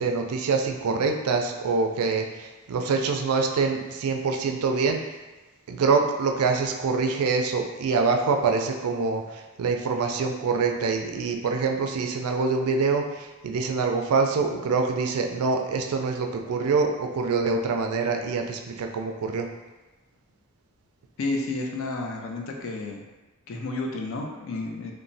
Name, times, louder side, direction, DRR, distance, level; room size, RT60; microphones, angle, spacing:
voice 1, 0.0-5.0 5.7-19.5, right 4 dB, 80° right, 4 dB, 0.4 m, -25 dB
voice 2, 21.2-23.0 23.5-24.9, left 2 dB, 65° left, 1 dB, 0.4 m, -31 dB
3.0 x 2.1 x 2.6 m, 1.2 s
head